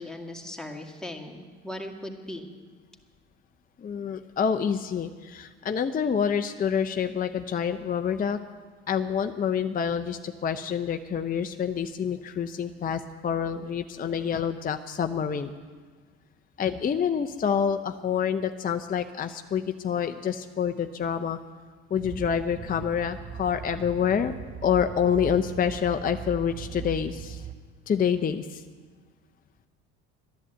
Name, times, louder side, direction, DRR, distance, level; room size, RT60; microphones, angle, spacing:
voice 1, 0.0-2.5, left 1 dB, ahead, 2 dB, 2.1 m, -38 dB
voice 2, 3.8-8.4 8.9-15.5 16.6-21.4 21.9-27.4 27.9-28.6, left 7 dB, 25° left, 7 dB, 0.7 m, -27 dB
sound 1, 21.9-27.5, right 7 dB, 25° right, 0.9 m, -39 dB
12.5 x 11.0 x 8.1 m, 1.5 s
hypercardioid pair, 75°, 33 cm